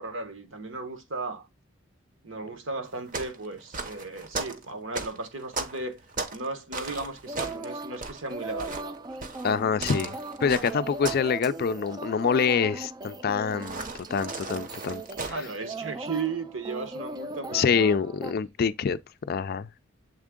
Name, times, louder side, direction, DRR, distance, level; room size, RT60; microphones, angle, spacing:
voice 1, 0.0-1.5 2.2-6.0 6.3-9.0 15.3-17.9, right 3 dB, 70° right, 1.2 m, -35 dB
sound 1, 2.8-6.5 6.7-11.3 11.6-11.9 13.6-15.4, right 3 dB, 45° right, 0.8 m, -36 dB
sound 2, 7.3-18.3, right 3 dB, 20° right, 0.3 m, -39 dB
voice 2, 9.4-10.1 10.4-15.3 17.5-19.0 19.3-19.7, left 6 dB, 50° left, 0.4 m, -26 dB
7.4 x 3.5 x 3.6 m
head